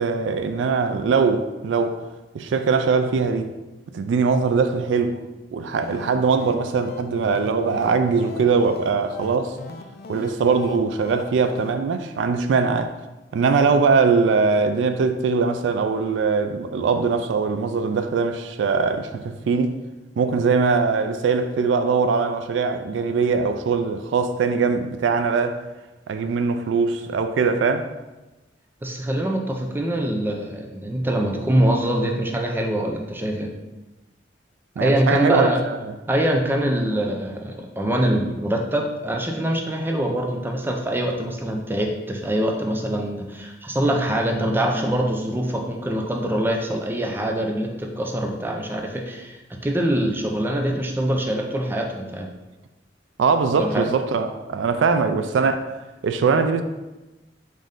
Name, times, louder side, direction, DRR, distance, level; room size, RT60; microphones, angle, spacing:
voice 1, 0.0-2.0 2.3-3.5 3.9-5.2 5.5-9.6 10.1-12.9 13.3-19.7 20.2-25.6 26.1-27.9 34.8-35.5 35.8-35.9 53.2-55.8 56.0-56.6, right 5 dB, 75° right, 0.3 m, -21 dB
sound 1, 5.6-11.7, left 2 dB, 55° left, 0.4 m, -39 dB
voice 2, 28.8-33.5 34.8-35.6 36.1-52.3 53.6-53.9, right 1 dB, 10° right, 0.4 m, -24 dB
5.2 x 2.6 x 3.7 m
head